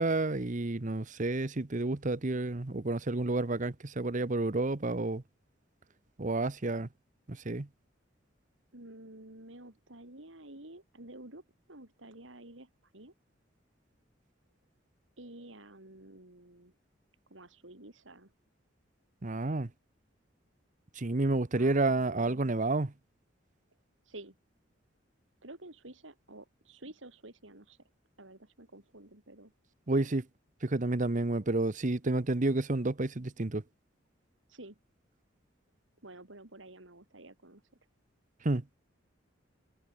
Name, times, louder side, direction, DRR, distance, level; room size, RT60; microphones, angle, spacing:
voice 1, 0.0-5.2 6.2-6.9 7.3-7.7 19.2-19.7 21.0-22.9 29.9-30.2 30.6-33.6 38.4-38.6, right 2 dB, 40° right, 1.0 m, -30 dB
voice 2, 8.7-13.1 15.2-16.7 17.3-18.3 21.6-22.5 24.0-24.4 25.4-27.8 28.2-29.5 29.9-30.1 34.5-34.8 36.0-37.6, right 2 dB, 80° right, 4.2 m, -50 dB
head